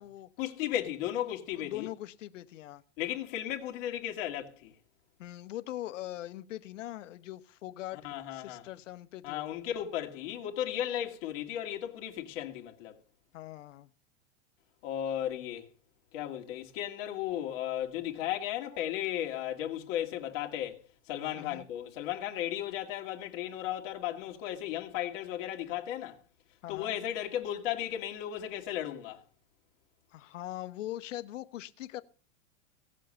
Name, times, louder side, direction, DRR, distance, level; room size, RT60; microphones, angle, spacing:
voice 1, 0.4-1.9 3.0-4.7 8.0-8.6 9.2-13.0 14.8-15.7 16.1-26.2 26.7-29.2, left 11 dB, 50° left, 2.4 m, -35 dB
voice 2, 1.5-2.8 5.2-9.5 13.3-13.9 21.3-21.7 26.6-27.0 30.1-32.0, left 14 dB, 75° left, 1.1 m, -42 dB
17.0 x 7.5 x 6.5 m
supercardioid pair, 145°, 38 cm